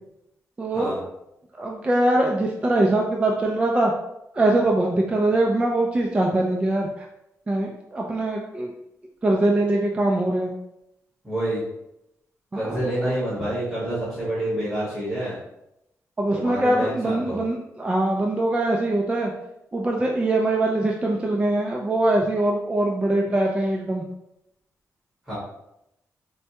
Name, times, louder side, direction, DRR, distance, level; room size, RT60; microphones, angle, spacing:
voice 1, 0.6-1.0 1.6-3.9 4.3-6.9 7.5-8.7 9.2-10.5 12.5-13.1 16.2-19.3 19.7-24.0, right 1 dB, 20° right, 0 dB, 0.3 m, -22 dB
voice 2, 11.2-11.6 12.5-15.4 16.3-17.4 25.3-25.4, right 1 dB, 5° right, -10 dB, 1.3 m, -28 dB
4.3 x 2.1 x 2.8 m, 0.84 s
wide cardioid pair, 140°, 6 cm